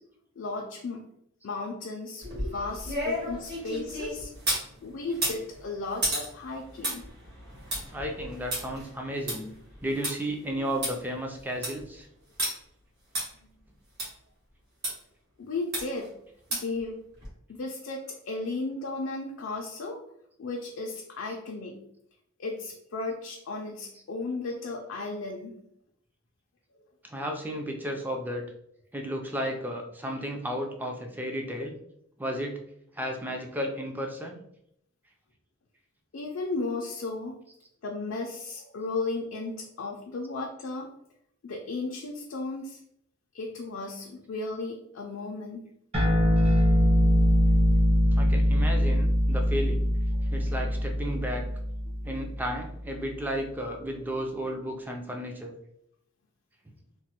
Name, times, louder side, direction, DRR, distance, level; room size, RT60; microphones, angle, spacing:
voice 1, 0.4-1.0 1.4-4.3 4.8-7.0 15.4-16.1 16.5-17.0 17.5-20.0 20.4-21.9 22.4-25.6 36.1-37.3 37.8-40.9 41.4-42.8 43.3-45.7 50.1-50.2 51.9-52.0, left 3 dB, 70° left, 0 dB, 0.4 m, -35 dB
sound 1, 2.2-4.7 5.1-10.1 10.5-10.6 10.8-10.9 11.4-11.8 12.4-12.5 13.2-13.3 14.0-14.1 14.8-14.9 15.7-16.1 16.5-16.8 17.2-17.3, right 1 dB, 55° right, 1.4 m, -32 dB
voice 2, 7.9-9.5 9.8-12.1 27.0-28.4 28.9-31.8 32.2-32.6 32.9-34.4 48.1-49.9 50.3-51.4 52.0-55.5, equal, 10° right, 2 dB, 0.3 m, -33 dB
sound 2, 45.9-52.8, equal, 30° right, 0.8 m, -23 dB
3.1 x 2.1 x 2.8 m, 0.73 s
head